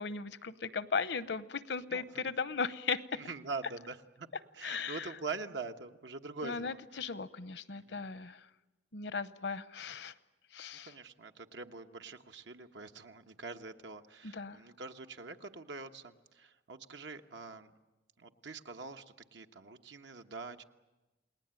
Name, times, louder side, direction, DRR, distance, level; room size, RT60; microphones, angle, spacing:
voice 1, 0.0-3.2 4.6-5.1 6.4-8.4 8.9-10.1 10.5-10.9 14.2-14.6, left 5 dB, 70° left, 15 dB, 0.8 m, -37 dB
voice 2, 1.9-2.2 3.1-4.3 4.5-7.1 7.7-8.0 10.9-17.7 18.2-20.6, right 4 dB, 90° right, 6 dB, 1.2 m, -44 dB
29.0 x 19.5 x 9.0 m, 1.1 s
head